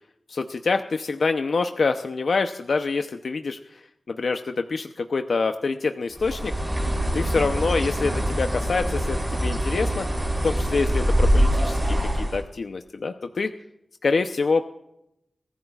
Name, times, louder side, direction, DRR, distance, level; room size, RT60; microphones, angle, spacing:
voice 1, 0.3-3.8 4.1-6.5 7.1-10.1 10.4-13.5 14.0-14.6, left 4 dB, 70° left, 7 dB, 0.7 m, -26 dB
Bird, 6.2-12.4, equal, 10° right, 6.1 m, -24 dB
23.0 x 15.0 x 2.4 m, 0.82 s
wide cardioid pair, 105°, 0 cm